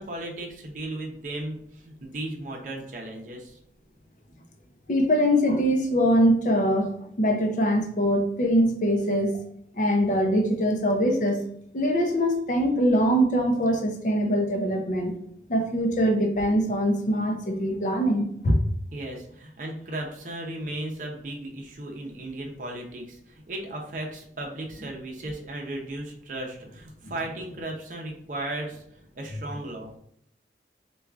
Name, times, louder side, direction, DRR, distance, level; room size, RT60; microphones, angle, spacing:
voice 1, 0.0-3.6 18.9-28.8 29.1-29.9, right 1 dB, 45° right, 0 dB, 0.6 m, -36 dB
voice 2, 4.9-6.9 7.2-9.4 9.8-11.4 11.7-15.2 15.5-18.6, equal, 45° left, 3 dB, 0.5 m, -23 dB
4.3 x 2.3 x 2.4 m, 0.70 s
head